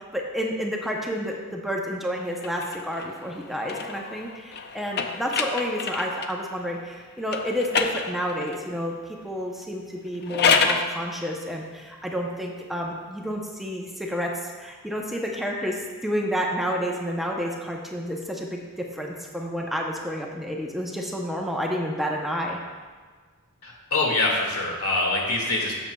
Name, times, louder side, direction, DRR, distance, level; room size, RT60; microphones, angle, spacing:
voice 1, 0.0-8.9 9.2-18.6 18.9-22.6, equal, ahead, -1 dB, 0.6 m, -30 dB
sound 1, 2.4-6.4 7.3-8.6 10.1-10.9, left 5 dB, 50° left, 0.5 m, -27 dB
voice 2, 23.6-25.8, left 2 dB, 75° left, -2 dB, 2.0 m, -24 dB
12.5 x 7.2 x 2.3 m, 1.5 s
head